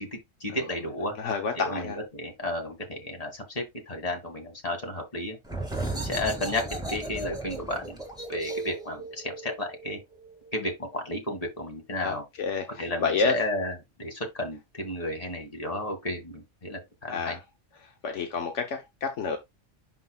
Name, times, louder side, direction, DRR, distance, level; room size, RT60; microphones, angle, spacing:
voice 1, 0.0-1.1 1.5-5.4 5.9-6.6 6.9-8.0 8.3-10.0 10.5-12.2 12.8-17.4, left 1 dB, 30° left, 2.2 m, -33 dB
voice 2, 1.2-2.0 12.0-13.3 17.1-17.4 18.0-19.4, left 4 dB, 90° left, 1.3 m, -29 dB
sound 1, 5.4-10.8, right 2 dB, 5° right, 1.9 m, -36 dB
11.0 x 4.0 x 2.3 m
omnidirectional pair, 1.2 m